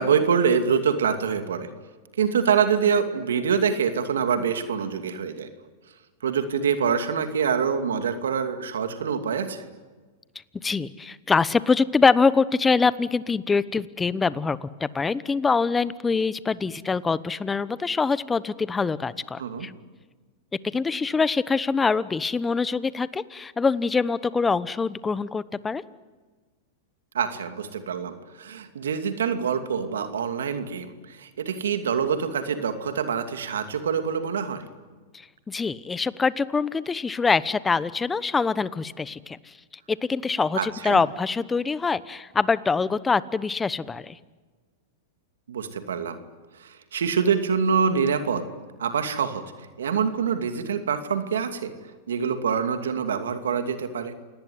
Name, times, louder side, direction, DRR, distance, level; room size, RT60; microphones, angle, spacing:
voice 1, 0.0-1.7 2.2-5.5 6.2-9.6 19.4-19.7 27.1-34.6 40.5-41.0 45.5-46.2 46.6-48.5 48.8-49.4 49.8-51.7 52.1-54.1, right 6 dB, 85° right, 8 dB, 2.5 m, -25 dB
voice 2, 10.6-19.7 20.7-25.8 35.5-39.5 39.9-44.2, left 4 dB, 15° left, 17 dB, 1.0 m, -24 dB
28.0 x 19.0 x 9.6 m, 1.4 s
hypercardioid pair, 120°, 0 cm